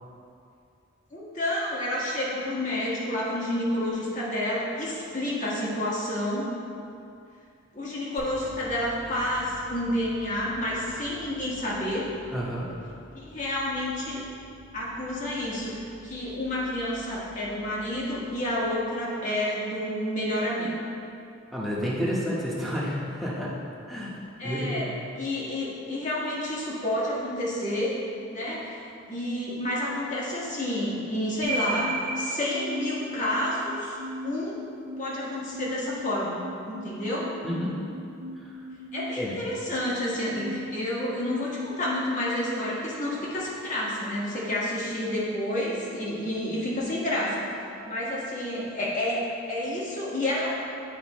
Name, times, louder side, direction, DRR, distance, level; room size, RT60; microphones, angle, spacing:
voice 1, 1.1-6.5 7.7-12.1 13.1-14.2 14.7-20.7 24.4-24.9 25.2-28.0 28.3-28.8 29.1-34.0 34.2-34.6 35.0-37.3 38.9-47.4 47.9-50.5, left 1 dB, 40° left, -6 dB, 1.5 m, -29 dB
sound 1, 8.2-19.1, equal, 30° right, 1.1 m, -50 dB
voice 2, 12.3-12.7 21.5-24.2 24.4-24.8 37.4-37.8 38.4-38.5 39.2-39.3, equal, ahead, -7 dB, 1.1 m, -30 dB
sound 2, 31.4-43.5, equal, 90° right, 0.9 m, -36 dB
9.2 x 4.5 x 3.0 m, 2.6 s
head